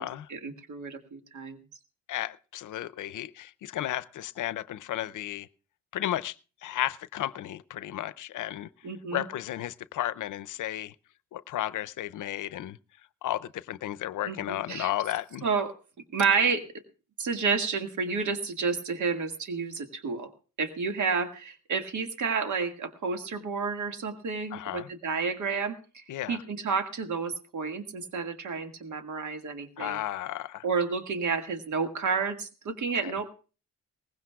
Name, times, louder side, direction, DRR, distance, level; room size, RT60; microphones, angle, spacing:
voice 1, 0.0-1.6 8.8-9.3 14.3-14.9 15.4-15.7 16.1-16.6 17.2-20.3 20.6-30.0 30.6-33.3, right 5 dB, 65° right, 1.9 m, -30 dB
voice 2, 2.1-5.5 5.9-6.4 6.6-8.7 9.1-10.9 11.3-12.8 13.2-15.4 24.5-24.9 26.1-26.4 29.8-30.6 33.0-33.1, left 13 dB, 70° left, 0.6 m, -33 dB
19.5 x 16.0 x 2.3 m
cardioid pair, 75°, 32 cm